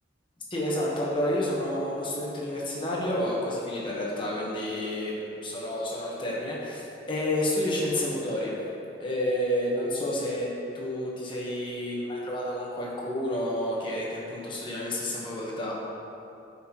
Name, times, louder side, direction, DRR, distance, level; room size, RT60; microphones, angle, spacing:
voice 1, 0.5-8.6 9.0-10.5 10.7-15.7, left 1 dB, 25° left, -5 dB, 1.2 m, -30 dB
8.2 x 5.7 x 3.0 m, 2.8 s
head